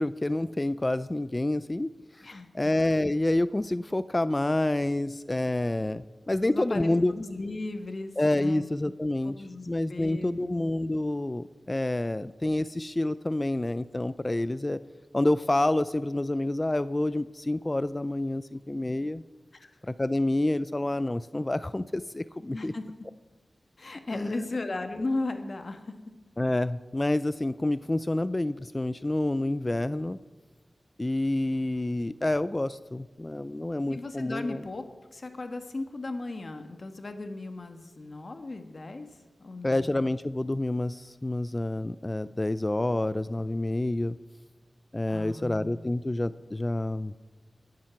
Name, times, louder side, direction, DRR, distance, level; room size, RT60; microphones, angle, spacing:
voice 1, 0.0-7.1 8.2-14.8 15.1-19.2 19.8-22.7 24.1-24.4 26.4-30.2 31.0-34.6 39.6-44.2 44.9-47.1, left 1 dB, 25° left, 15 dB, 0.3 m, -28 dB
voice 2, 6.4-8.7 9.2-10.6 19.5-19.7 22.5-22.8 23.8-25.8 33.9-34.8 35.1-39.1 39.4-39.9 45.1-45.9, left 2 dB, 50° left, 7 dB, 1.4 m, -36 dB
21.0 x 7.5 x 5.9 m, 1.3 s
wide cardioid pair, 90°, 0 cm